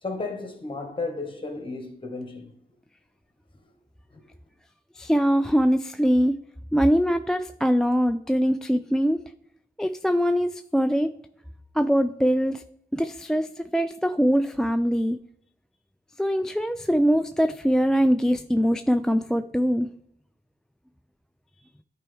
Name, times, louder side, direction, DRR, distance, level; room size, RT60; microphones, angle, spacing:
voice 1, 0.0-2.5 4.1-4.2, left 3 dB, 30° left, 1.6 m, -33 dB
voice 2, 4.9-6.4 6.7-9.2 9.8-11.1 11.7-12.6 12.9-15.2 16.2-19.9, equal, 5° left, 0.3 m, -22 dB
10.5 x 4.4 x 3.5 m
cardioid pair, 70°, 17 cm